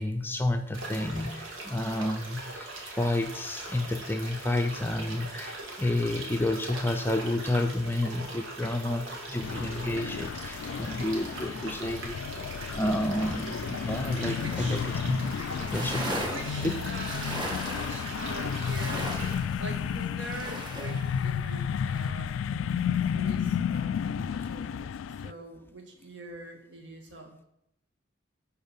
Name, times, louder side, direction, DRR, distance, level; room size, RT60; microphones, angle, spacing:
voice 1, 0.0-12.2 12.7-14.8 15.1-15.2 15.7-16.3 16.6-16.8, left 1 dB, 10° left, 5 dB, 0.5 m, -30 dB
sound 1, 0.7-19.4, right 2 dB, 85° right, 2.0 m, -41 dB
sound 2, 9.4-25.3, left 7 dB, 80° left, 0.3 m, -32 dB
sound 3, 14.4-14.8 15.1-15.2 15.5-21.3 21.7-22.1, right 1 dB, 25° right, 1.5 m, -38 dB
voice 2, 14.4-15.1 16.3-17.4 17.7-19.2 19.6-22.4 23.1-24.9 25.2-27.4, right 2 dB, 65° right, 1 dB, 1.9 m, -43 dB
10.5 x 4.5 x 5.5 m, 0.80 s
head